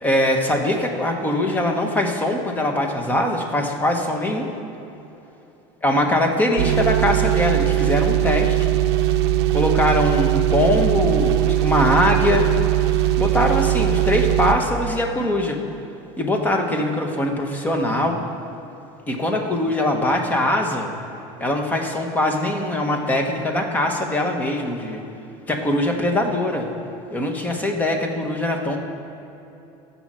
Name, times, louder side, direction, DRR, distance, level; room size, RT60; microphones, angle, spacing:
voice 1, 0.0-4.5 5.8-8.7 9.5-12.5 13.2-15.6 16.2-18.2 19.1-20.9 21.4-25.0 25.5-26.7 27.1-28.8, left 1 dB, 10° left, 3 dB, 1.2 m, -22 dB
sound 1, 6.6-14.6, right 12 dB, 90° right, 0.6 m, -20 dB
14.0 x 5.6 x 7.5 m, 2.9 s
cardioid pair, 150°, 14 cm